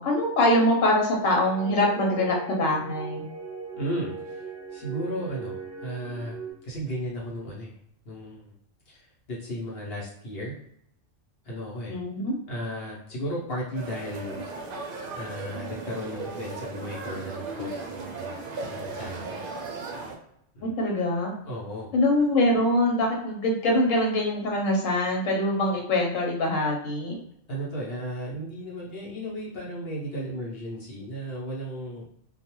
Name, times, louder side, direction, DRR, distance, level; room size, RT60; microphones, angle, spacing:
voice 1, 0.0-3.3 11.9-12.3 20.6-21.3 21.9-27.2, left 1 dB, 85° left, -1 dB, 1.1 m, -24 dB
sound 1, 1.4-6.5, right 4 dB, 5° left, 1.2 m, -38 dB
voice 2, 3.7-4.5 4.7-6.4 6.6-7.7 8.1-8.5 8.9-10.6 11.4-12.0 12.5-14.4 15.2-18.4 18.7-19.4 20.5-20.7 21.4-21.9 27.5-32.1, equal, 55° left, -5 dB, 1.0 m, -35 dB
sound 2, 13.7-20.2, right 3 dB, 55° right, 0.6 m, -36 dB
2.4 x 2.2 x 2.9 m, 0.73 s
omnidirectional pair, 1.3 m